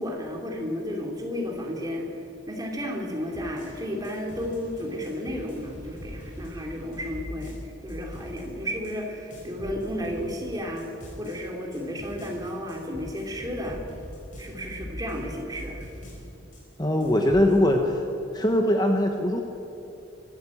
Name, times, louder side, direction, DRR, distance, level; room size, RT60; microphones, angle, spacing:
voice 1, 0.0-10.9 11.2-13.8 14.4-15.9, equal, 20° right, 0 dB, 3.1 m, -33 dB
sound 1, 3.2-9.0 9.3-11.4 11.7-16.7 17.0-17.6, equal, 40° left, 4.5 m, -42 dB
voice 2, 16.8-18.0 18.3-19.4, left 1 dB, 20° left, 3 dB, 1.1 m, -21 dB
23.5 x 13.0 x 8.6 m, 3.0 s
head